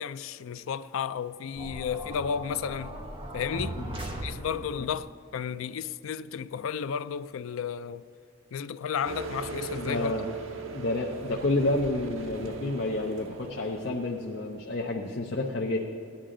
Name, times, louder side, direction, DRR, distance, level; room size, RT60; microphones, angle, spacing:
voice 1, 0.0-2.9 3.3-3.8 4.2-8.1 8.5-10.1, left 7 dB, 85° left, 0.4 m, -33 dB
sound 1, 1.6-4.9, right 1 dB, 30° right, 1.0 m, -38 dB
sound 2, 9.0-14.6, right 4 dB, 80° right, 0.8 m, -40 dB
voice 2, 9.7-10.3 10.6-15.8, left 2 dB, 55° left, 0.7 m, -29 dB
17.5 x 10.0 x 3.8 m
head